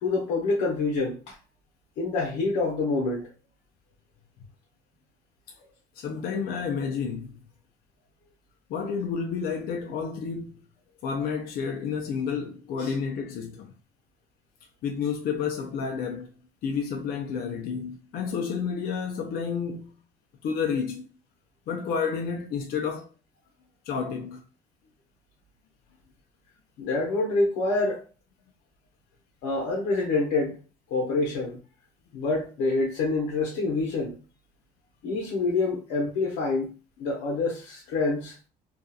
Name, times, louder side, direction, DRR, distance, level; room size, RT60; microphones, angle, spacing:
voice 1, 0.0-1.4 2.0-3.3 12.8-12.9 26.8-28.0 29.4-30.6 30.9-31.6 32.1-34.2 35.0-36.7 37.0-38.4, left 3 dB, 90° left, 0.8 m, -26 dB
voice 2, 6.0-7.3 8.7-10.6 11.0-13.7 14.8-16.3 16.6-19.9 20.4-21.0 21.7-23.1 23.9-24.4, left 6 dB, 65° left, 0.5 m, -30 dB
2.7 x 2.4 x 2.3 m
cardioid pair, 110°, 17 cm